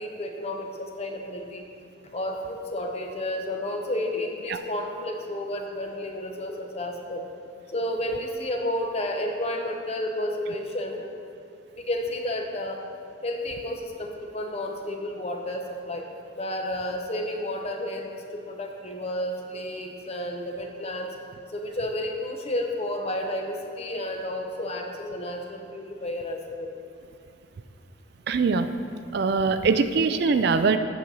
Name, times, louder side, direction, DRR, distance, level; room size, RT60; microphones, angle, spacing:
voice 1, 0.0-1.6 2.1-7.2 7.7-11.1 11.8-12.8 13.2-16.1 16.4-18.1 18.4-21.1 21.5-26.7, left 1 dB, 35° left, 3 dB, 0.8 m, -31 dB
voice 2, 28.3-28.7 29.1-30.8, right 4 dB, 55° right, 10 dB, 0.4 m, -22 dB
8.5 x 6.1 x 5.4 m, 2.5 s
head